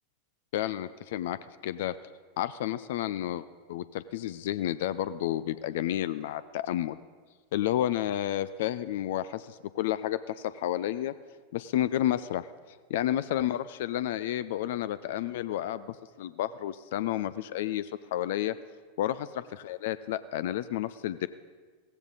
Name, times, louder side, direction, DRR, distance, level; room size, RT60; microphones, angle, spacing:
voice 1, 0.5-1.9 2.4-7.0 7.5-11.1 11.5-12.5 12.9-18.5 19.0-19.3 19.5-21.3, left 12 dB, 55° left, 15 dB, 0.4 m, -31 dB
16.5 x 15.0 x 4.0 m, 1.5 s
figure-of-eight pair, 90°, 0 cm